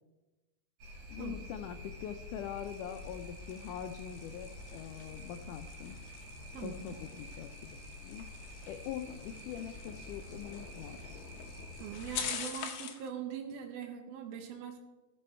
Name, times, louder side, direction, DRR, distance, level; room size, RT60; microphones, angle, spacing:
sound 1, 0.8-12.2, left 1 dB, 55° right, 3.6 m, -48 dB
voice 1, 1.1-6.0 6.6-8.2 8.7-11.2, left 9 dB, 90° left, 7 dB, 1.8 m, -43 dB
sound 2, 2.4-13.1, left 7 dB, 70° left, 1.8 m, -46 dB
voice 2, 11.8-14.8, right 9 dB, 85° right, 5 dB, 1.4 m, -42 dB
14.0 x 7.0 x 4.4 m, 1.1 s
omnidirectional pair, 4.3 m